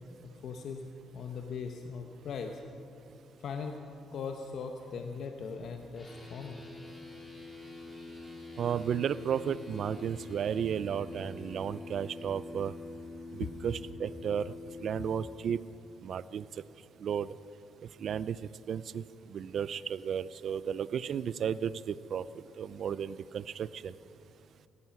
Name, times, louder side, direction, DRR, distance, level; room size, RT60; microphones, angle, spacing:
voice 1, 0.2-0.9 1.1-2.6 3.4-3.8 4.1-6.7 13.4-13.5, left 5 dB, 65° left, 4 dB, 1.0 m, -39 dB
sound 1, 6.0-15.3, left 3 dB, 15° left, 4.8 m, -45 dB
voice 2, 8.6-12.7 13.3-14.5 14.8-15.6 16.0-16.4 17.0-17.3 18.0-18.4 18.7-19.0 19.3-22.2 22.6-23.9, right 8 dB, 60° right, 17 dB, 0.5 m, -33 dB
17.0 x 14.0 x 6.0 m, 2.6 s
cardioid pair, 90°, 0 cm